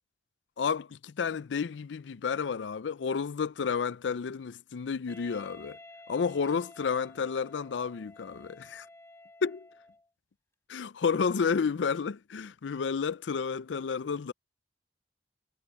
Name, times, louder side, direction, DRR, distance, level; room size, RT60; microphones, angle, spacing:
voice 1, 0.6-5.8 6.1-8.9 9.4-9.7 10.7-14.3, left 6 dB, 85° left, 0.5 m, -31 dB
Wind instrument woodwind instrument, 5.1-10.1, left 2 dB, 15° left, 3.5 m, -53 dB
head